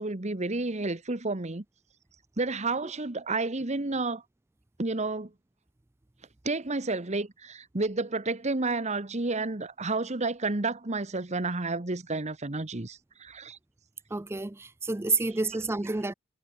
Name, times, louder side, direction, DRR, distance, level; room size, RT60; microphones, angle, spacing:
voice 1, 0.0-1.6 2.4-4.2 4.8-5.3 6.4-13.6, right 3 dB, 30° right, 1.3 m, -31 dB
voice 2, 14.1-16.1, right 3 dB, 10° right, 0.4 m, -29 dB
head